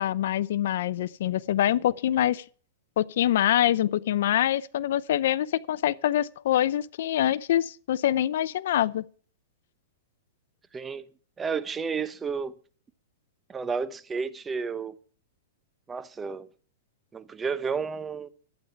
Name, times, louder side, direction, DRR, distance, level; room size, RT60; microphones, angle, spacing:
voice 1, 0.0-2.4 3.0-9.0, left 12 dB, 65° left, 0.5 m, -25 dB
voice 2, 10.7-11.1 11.4-12.5 13.5-14.9 15.9-16.5 17.1-18.3, right 5 dB, 15° right, 0.8 m, -31 dB
12.0 x 9.4 x 5.8 m
hypercardioid pair, 140°, 0 cm